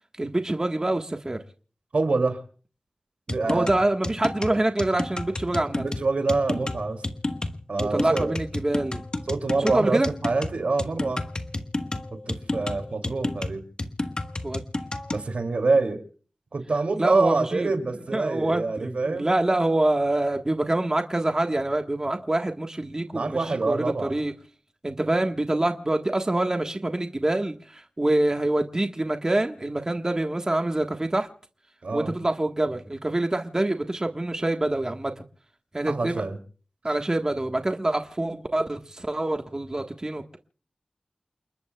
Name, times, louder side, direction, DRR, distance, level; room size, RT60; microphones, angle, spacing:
voice 1, 0.2-1.4 3.4-5.8 7.8-9.0 9.6-10.1 14.4-14.6 17.0-17.7 18.1-24.3 24.8-31.3 31.9-35.1 35.7-36.2 36.8-40.4, right 1 dB, 30° right, 4 dB, 1.4 m, -25 dB
voice 2, 1.9-2.4 3.3-3.7 5.7-7.0 7.7-8.4 9.3-11.3 12.3-13.6 15.1-16.0 16.5-19.4 23.1-24.1 31.8-32.1 35.9-36.4, right 3 dB, 80° right, 6 dB, 2.7 m, -26 dB
sound 1, 3.3-15.3, left 2 dB, 40° left, 1.3 m, -31 dB
29.5 x 20.0 x 2.3 m, 0.42 s
wide cardioid pair, 80°, 2 cm